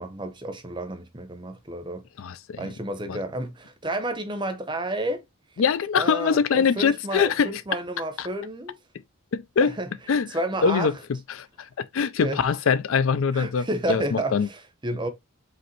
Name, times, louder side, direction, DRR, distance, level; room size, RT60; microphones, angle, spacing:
voice 1, 0.0-2.0 2.6-5.2 6.0-8.8 9.6-9.9 10.3-10.9 12.2-12.4 13.3-15.1, right 1 dB, 20° right, 0.7 m, -31 dB
voice 2, 2.2-2.6 3.1-3.2 5.6-7.8 8.2-8.3 9.3-9.8 10.1-14.5, left 6 dB, 70° left, 0.4 m, -24 dB
5.1 x 3.1 x 3.0 m
head